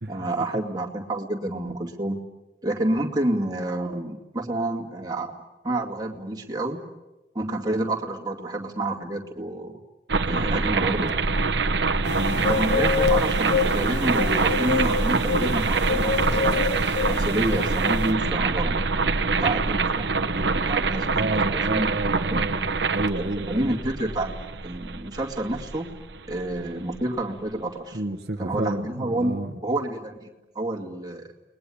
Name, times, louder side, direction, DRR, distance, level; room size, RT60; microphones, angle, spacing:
voice 1, 0.1-2.2 2.6-5.3 5.6-6.8 7.3-9.8 10.2-11.2 12.4-16.6 17.0-18.8 19.4-21.9 22.2-22.4 23.2-25.9 26.3-28.0 28.4-31.3, right 1 dB, 20° right, 1 dB, 2.4 m, -29 dB
sound 1, 10.1-27.0, right 4 dB, 85° right, 1.1 m, -25 dB
sound 2, 12.0-18.1, left 4 dB, 90° left, 2.0 m, -27 dB
voice 2, 12.1-12.4 21.1-23.8 27.9-29.6, right 2 dB, 60° right, 3 dB, 1.3 m, -30 dB
30.0 x 21.0 x 8.7 m, 1.1 s
head